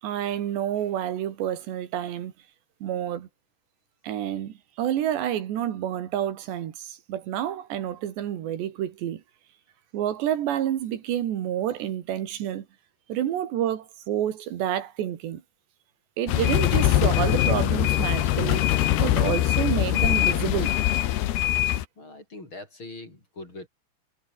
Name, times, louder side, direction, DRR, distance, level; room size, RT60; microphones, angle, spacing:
voice 1, 0.0-2.3 2.8-3.3 4.0-9.2 9.9-12.7 13.1-15.4 16.2-20.7, right 11 dB, 80° right, 4.2 m, -29 dB
sound 1, 16.3-21.9, left 14 dB, 70° left, 3.3 m, -22 dB
voice 2, 22.0-23.7, left 2 dB, 25° left, 7.0 m, -42 dB
omnidirectional pair, 5.0 m